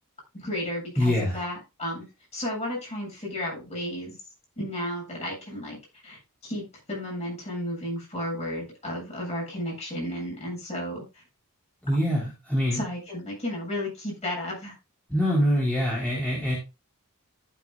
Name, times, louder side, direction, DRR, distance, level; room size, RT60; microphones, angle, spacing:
voice 1, 0.3-2.1 2.3-4.2 4.6-11.2 12.7-14.7, left 1 dB, 30° left, -2 dB, 7.9 m, -33 dB
voice 2, 1.0-1.4 11.8-12.8 15.1-16.5, equal, 5° left, -6 dB, 4.1 m, -24 dB
15.0 x 8.5 x 2.4 m, 0.25 s
head